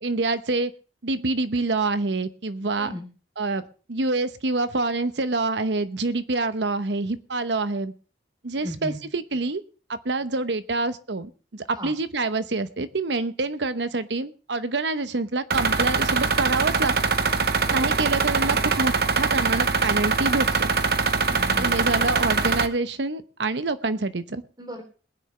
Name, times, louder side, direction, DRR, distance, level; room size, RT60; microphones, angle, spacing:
voice 1, 0.0-0.7 1.0-2.9 3.4-3.6 3.9-7.9 8.4-9.6 9.9-17.1 17.7-20.7 21.6-24.4, right 3 dB, 85° right, 12 dB, 1.0 m, -26 dB
voice 2, 2.8-3.1 8.6-9.0 11.7-11.9 17.7-18.1 18.4-18.6 21.2-21.7 24.6-24.8, equal, 25° right, 2 dB, 3.5 m, -37 dB
sound 1, 15.5-22.7, right 4 dB, 60° right, 1.0 m, -23 dB
21.5 x 9.6 x 3.3 m, 0.36 s
head